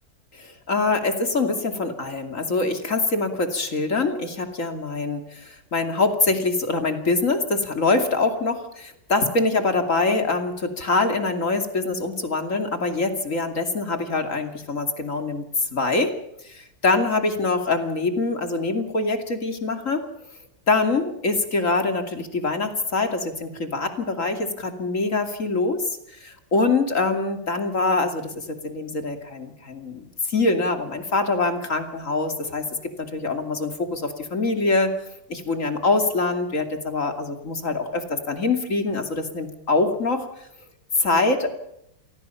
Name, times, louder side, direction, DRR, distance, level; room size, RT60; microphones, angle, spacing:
voice 1, 0.4-15.4 15.7-16.1 16.5-20.0 20.7-25.9 26.2-32.7 33.0-34.9 35.3-40.3 41.0-41.5, left 3 dB, 45° left, 6 dB, 2.9 m, -24 dB
28.0 x 19.0 x 5.7 m, 0.78 s
omnidirectional pair, 2.0 m